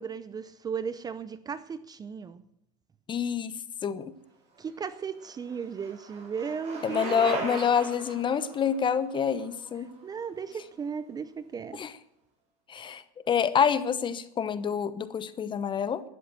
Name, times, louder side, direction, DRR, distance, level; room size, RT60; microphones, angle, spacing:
voice 1, 0.0-2.4 4.6-7.5 10.0-11.8 12.9-13.0, right 6 dB, 20° right, 0.6 m, -36 dB
voice 2, 3.1-3.6 3.8-4.1 6.8-9.9 11.7-11.9 12.7-16.0, left 7 dB, 25° left, 0.9 m, -27 dB
Bicycle, 4.7-10.6, right 4 dB, 35° right, 7.3 m, -39 dB
12.5 x 11.0 x 7.8 m
supercardioid pair, 130°, 19 cm